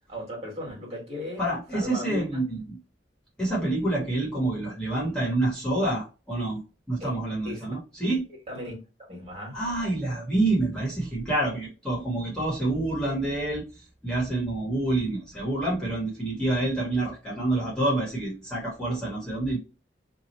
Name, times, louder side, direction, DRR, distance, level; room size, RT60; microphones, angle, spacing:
voice 1, 0.1-1.4 1.7-2.4 7.0-7.1 7.4-7.7 8.5-8.8 9.1-9.6, left 1 dB, 35° right, 1.6 m, -36 dB
voice 2, 1.4-2.8 3.4-6.6 6.9-8.2 9.5-19.6, right 2 dB, 5° left, 1.1 m, -27 dB
2.9 x 2.3 x 4.1 m
head